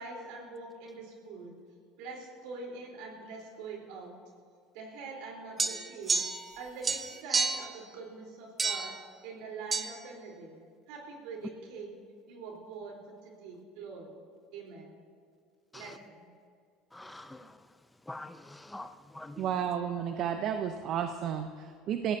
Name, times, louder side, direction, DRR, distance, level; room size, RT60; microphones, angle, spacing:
voice 1, 0.0-1.5 2.0-4.2 4.7-6.2 6.6-8.9 9.2-10.6 10.9-12.0 12.3-14.2 14.5-14.9 15.7-16.3, right 4 dB, 75° right, 4.0 m, -44 dB
sound 1, 5.6-6.6 6.8-7.7 8.6-9.0 9.7-9.9, right 4 dB, 25° right, 1.0 m, -30 dB
voice 2, 16.9-17.6 18.1-19.5, left 2 dB, 10° left, 0.6 m, -45 dB
voice 3, 19.4-22.2, right 8 dB, 55° right, 0.8 m, -32 dB
20.5 x 15.5 x 2.8 m
supercardioid pair, 95°, 0 cm